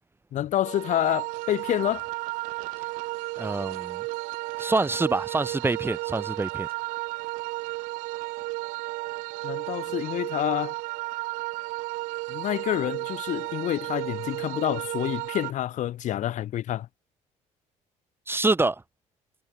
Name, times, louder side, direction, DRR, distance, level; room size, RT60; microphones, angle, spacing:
voice 1, 0.3-2.0 9.4-10.7 12.3-16.9, left 12 dB, 65° left, 1.7 m, -28 dB
sound 1, 0.6-15.5, right 25 dB, 90° right, 1.1 m, -33 dB
voice 2, 3.4-4.0 4.6-6.7 18.3-18.8, right 3 dB, 15° right, 1.7 m, -26 dB
supercardioid pair, 85°, 14 cm